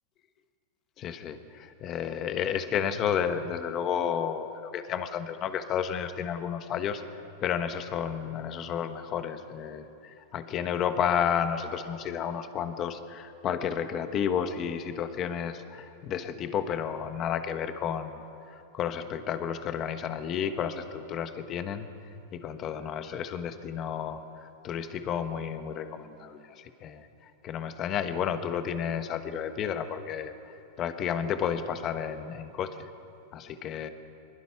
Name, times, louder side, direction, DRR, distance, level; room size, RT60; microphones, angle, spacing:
voice 1, 1.0-7.0 7.4-18.2 18.5-21.9 22.3-24.2 24.6-27.1 27.4-30.3 30.8-32.9 33.3-33.9, left 8 dB, 25° left, 9 dB, 1.2 m, -31 dB
24.5 x 22.0 x 5.9 m, 2.7 s
supercardioid pair, 160°, 0 cm